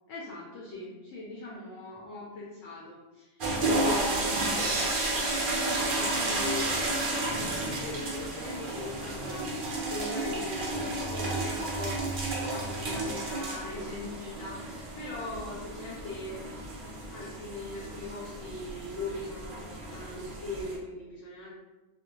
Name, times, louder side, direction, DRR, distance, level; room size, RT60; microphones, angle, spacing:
voice 1, 0.1-4.7 5.5-12.1 12.4-21.5, left 2 dB, 70° left, -5 dB, 0.9 m, -40 dB
sound 1, 3.4-20.8, right 2 dB, 55° right, 0.6 m, -32 dB
sound 2, 4.6-6.9, right 3 dB, 85° right, 1.0 m, -39 dB
2.4 x 2.0 x 2.8 m, 1.1 s
omnidirectional pair, 1.4 m